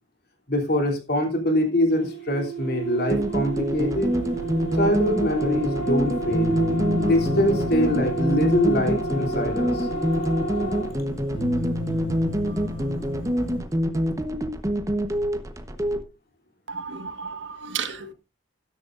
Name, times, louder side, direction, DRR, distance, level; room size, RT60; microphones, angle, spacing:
voice 1, 0.5-4.1 4.8-6.5 7.0-9.9, left 1 dB, 55° left, 2.9 m, -24 dB
sound 1, 1.9-11.0, right 3 dB, 45° right, 6.9 m, -31 dB
sound 2, 3.1-16.0, equal, 15° right, 1.0 m, -26 dB
sound 3, 3.8-13.6, left 1 dB, 30° left, 5.1 m, -32 dB
voice 2, 16.7-18.1, right 6 dB, 70° right, 1.5 m, -33 dB
13.0 x 11.0 x 2.5 m
head